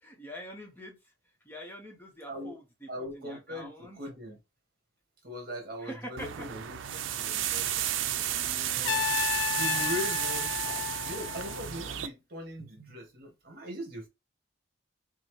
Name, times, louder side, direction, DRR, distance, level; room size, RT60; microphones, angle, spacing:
voice 1, 0.0-1.1 1.4-2.9 3.1-4.0 5.8-6.5 8.1-9.1, equal, 10° left, 0.8 m, -45 dB
voice 2, 2.9-4.4 5.2-6.8 7.1-7.7 8.7-9.0 9.6-14.1, equal, 50° right, 1.4 m, -40 dB
sound 1, 6.2-12.1, right 11 dB, 85° right, 0.4 m, -32 dB
Trumpet, 8.8-11.8, left 13 dB, 75° left, 0.3 m, -33 dB
5.4 x 2.0 x 3.1 m
head